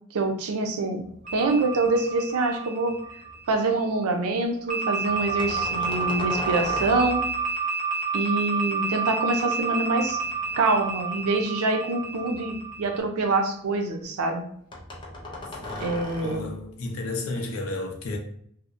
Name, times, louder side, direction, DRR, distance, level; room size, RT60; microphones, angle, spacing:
voice 1, 0.1-1.0 1.3-3.0 3.5-7.2 8.1-10.2 10.6-14.4 15.8-16.4, right 3 dB, 85° right, 0.5 m, -25 dB
sound 1, 1.0-2.3 2.8-3.4 5.1-7.4 9.9-11.5 12.0-13.2 14.7-16.6, left 2 dB, 20° left, 0.4 m, -38 dB
sound 2, 1.2-3.8 4.7-13.0, right 4 dB, 35° right, 0.6 m, -30 dB
voice 2, 15.6-18.2, left 2 dB, 75° left, 0.5 m, -33 dB
2.7 x 2.0 x 2.4 m
head